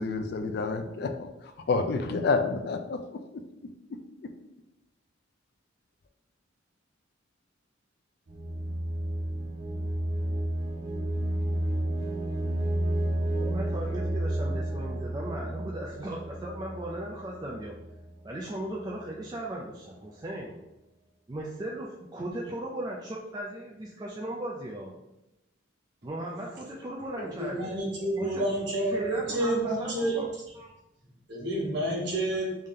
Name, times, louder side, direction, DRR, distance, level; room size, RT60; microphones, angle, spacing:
voice 1, 0.0-4.3, left 4 dB, 55° left, 7 dB, 0.3 m, -30 dB
sound 1, 8.3-18.1, right 1 dB, 80° right, 0.8 m, -31 dB
voice 2, 13.3-17.7 18.2-20.6 21.3-24.9 26.0-28.5 28.9-30.3 30.5-30.7, right 1 dB, 20° right, -2 dB, 0.3 m, -37 dB
voice 3, 27.2-30.2 31.3-32.5, right 1 dB, 60° right, -5 dB, 1.3 m, -29 dB
3.3 x 2.7 x 3.5 m, 0.92 s
head